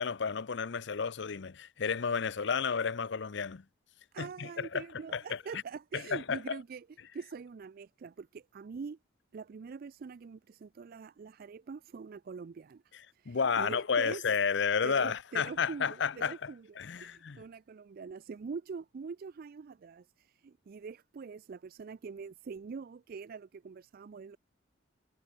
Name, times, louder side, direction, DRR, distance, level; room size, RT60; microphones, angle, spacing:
voice 1, 0.0-3.6 4.2-4.8 5.1-5.6 5.9-6.6 12.9-16.5 16.8-17.4, left 6 dB, 65° left, 0.6 m, -32 dB
voice 2, 4.1-6.9 7.1-9.0 9.3-12.8 13.1-14.2 14.8-16.7 17.0-24.4, right 5 dB, 50° right, 0.4 m, -44 dB
head